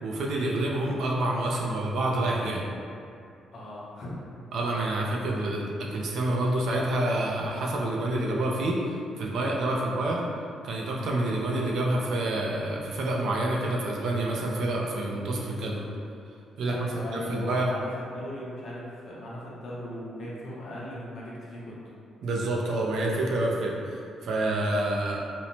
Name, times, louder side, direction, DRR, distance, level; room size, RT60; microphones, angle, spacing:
voice 1, 0.0-2.6 4.5-10.3 10.6-15.9 16.6-17.7 22.2-25.2, right 1 dB, 65° right, -2 dB, 0.4 m, -28 dB
voice 2, 3.5-4.4 16.6-21.9, left 1 dB, 45° left, -6 dB, 0.6 m, -37 dB
2.5 x 2.0 x 2.9 m, 2.4 s
cardioid pair, 170°, 0 cm